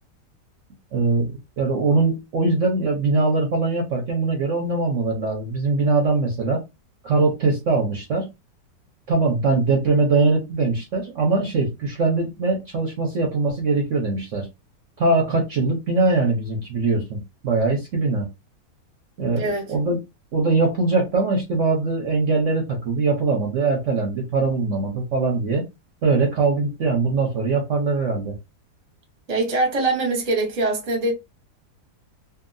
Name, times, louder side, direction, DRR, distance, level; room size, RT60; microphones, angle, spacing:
voice 1, 0.9-6.6 7.0-8.3 9.1-14.5 15.0-18.3 19.2-20.0 20.3-25.6 26.0-28.3, right 3 dB, 55° right, 1.0 m, -22 dB
voice 2, 19.4-19.7 29.3-31.1, right 2 dB, 30° right, 0.9 m, -23 dB
2.8 x 2.6 x 2.5 m
omnidirectional pair, 1.8 m